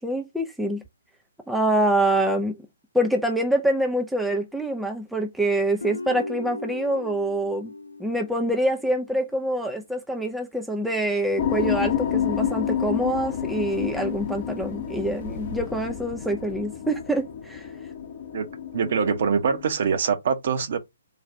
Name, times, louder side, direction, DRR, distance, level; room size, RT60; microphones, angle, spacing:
voice 1, 0.0-0.8 1.5-2.5 2.9-7.7 8.0-17.7, right 1 dB, ahead, 0.5 m, -25 dB
Guitar, 5.8-9.1, left 2 dB, 70° left, 0.5 m, -37 dB
sound 1, 11.4-19.7, left 9 dB, 40° left, 0.8 m, -29 dB
voice 2, 18.7-20.8, right 6 dB, 45° right, 0.9 m, -23 dB
4.1 x 2.4 x 4.7 m
figure-of-eight pair, 130°, 0 cm